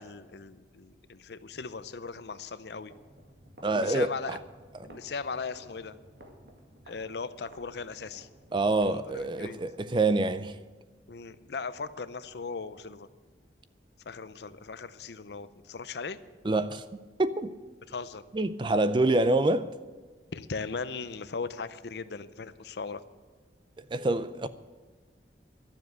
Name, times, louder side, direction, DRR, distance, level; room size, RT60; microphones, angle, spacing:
voice 1, 0.0-2.9 3.7-4.4 4.8-6.0 6.9-8.3 8.9-9.0 9.4-9.6 11.1-13.1 14.1-16.2 17.9-18.2 20.3-23.0, left 4 dB, 70° left, 0.6 m, -38 dB
sound 1, 2.8-10.2, right 1 dB, 70° right, 1.9 m, -55 dB
voice 2, 3.6-4.4 4.8-4.9 8.5-10.6 16.4-16.8 17.2-17.5 18.3-19.7 23.9-24.5, right 2 dB, 25° right, 0.4 m, -26 dB
12.0 x 7.4 x 9.2 m
head